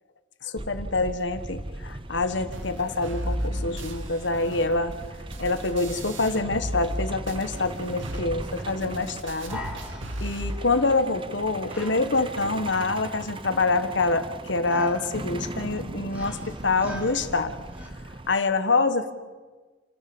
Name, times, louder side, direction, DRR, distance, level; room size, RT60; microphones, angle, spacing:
voice 1, 0.4-4.9 5.4-9.6 10.2-17.5 18.3-19.1, left 3 dB, 65° left, 9 dB, 1.5 m, -26 dB
Truck, 0.6-18.3, right 2 dB, 25° right, 0.8 m, -39 dB
sound 1, 2.5-7.0 7.3-10.5, equal, 80° right, 2.1 m, -35 dB
sound 2, 9.5-17.9, equal, 10° right, 2.9 m, -42 dB
29.0 x 13.5 x 7.1 m, 1.3 s
head